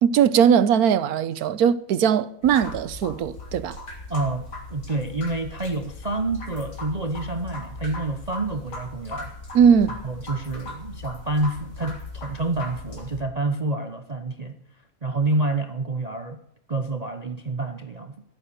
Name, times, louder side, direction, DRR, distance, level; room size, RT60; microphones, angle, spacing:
voice 1, 0.0-3.8 9.5-10.0, right 8 dB, 70° right, 1.2 m, -19 dB
sound 1, 2.4-13.2, left 2 dB, 75° left, 4.2 m, -38 dB
voice 2, 4.1-9.3 10.0-14.6 15.0-16.4 16.7-18.2, right 2 dB, 35° right, 0.6 m, -28 dB
14.5 x 11.5 x 6.8 m
omnidirectional pair, 1.8 m